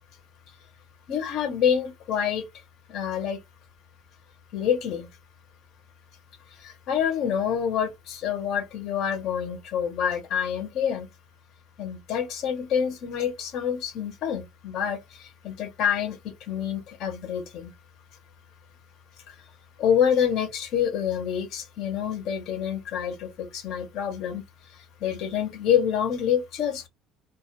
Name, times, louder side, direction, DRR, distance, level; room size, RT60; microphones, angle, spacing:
voice 1, 1.1-2.5 2.9-3.4 4.5-5.1 6.5-11.1 11.8-17.7 19.3-19.4 19.8-26.9, left 8 dB, 50° left, 0.6 m, -27 dB
2.1 x 2.1 x 2.8 m
cardioid pair, 165°, 0 cm